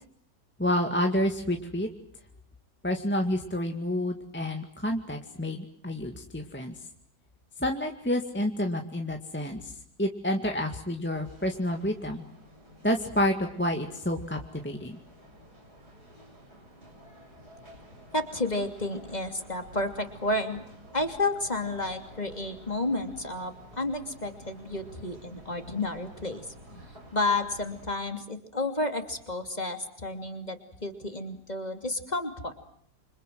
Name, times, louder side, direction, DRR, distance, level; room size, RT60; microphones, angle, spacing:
voice 1, 0.6-1.9 2.8-6.7 7.6-9.7 10.0-12.2 12.8-15.0, left 1 dB, 5° left, 3 dB, 2.0 m, -29 dB
sound 1, 11.1-27.9, equal, 70° right, 7.6 m, -51 dB
voice 2, 18.1-20.6 20.9-26.8 27.1-32.5, left 2 dB, 25° left, 6 dB, 3.0 m, -31 dB
28.0 x 26.0 x 7.8 m, 0.63 s
omnidirectional pair, 1.7 m